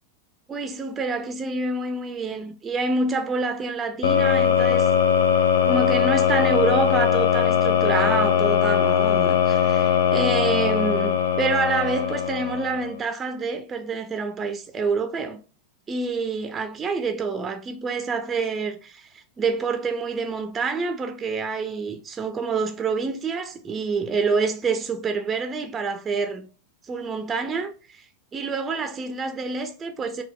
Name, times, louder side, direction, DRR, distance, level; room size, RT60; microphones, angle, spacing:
voice 1, 0.5-4.9 5.6-15.4 15.9-26.5 26.8-28.1 28.3-30.2, right 4 dB, 20° right, 0.4 m, -27 dB
sound 1, 4.0-12.9, left 8 dB, 60° left, 0.3 m, -20 dB
4.0 x 2.1 x 2.2 m
figure-of-eight pair, 90°, 0 cm